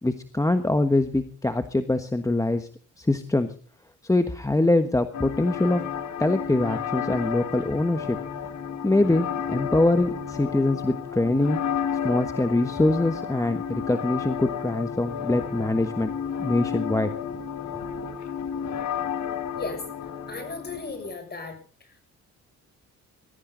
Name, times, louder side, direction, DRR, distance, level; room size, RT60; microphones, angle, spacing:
voice 1, 0.0-2.7 3.0-3.5 4.0-5.8 6.2-8.2 8.8-11.6 12.0-16.1 16.4-17.1, left 2 dB, 10° left, 9 dB, 1.3 m, -23 dB
sound 1, 5.1-21.1, left 8 dB, 65° left, 1.8 m, -32 dB
voice 2, 20.3-21.6, left 3 dB, 35° left, 7 dB, 6.8 m, -35 dB
21.0 x 15.0 x 3.9 m, 0.38 s
cardioid pair, 90°, 30 cm